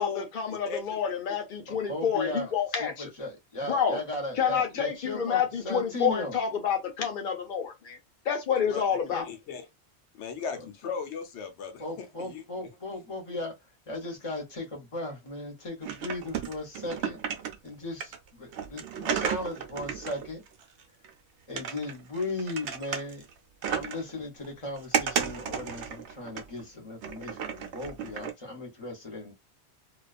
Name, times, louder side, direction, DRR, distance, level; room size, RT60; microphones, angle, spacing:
voice 1, 0.0-3.1 3.6-4.0 4.4-8.0 8.2-9.2, left 7 dB, 50° left, 0.9 m, -28 dB
voice 2, 1.7-2.5 2.8-6.4 9.1-9.2 11.8-13.5 13.9-17.2 17.6-20.4 21.5-23.2 23.7-29.3, left 2 dB, 30° left, 1.0 m, -37 dB
voice 3, 9.2-9.7 10.2-12.4, left 6 dB, 85° left, 1.0 m, -36 dB
sound 1, 15.8-17.7 18.0-21.1 21.6-23.3 23.6-24.1 24.4-26.6 27.0-28.3, right 8 dB, 80° right, 0.9 m, -33 dB
2.4 x 2.3 x 2.4 m
omnidirectional pair, 1.1 m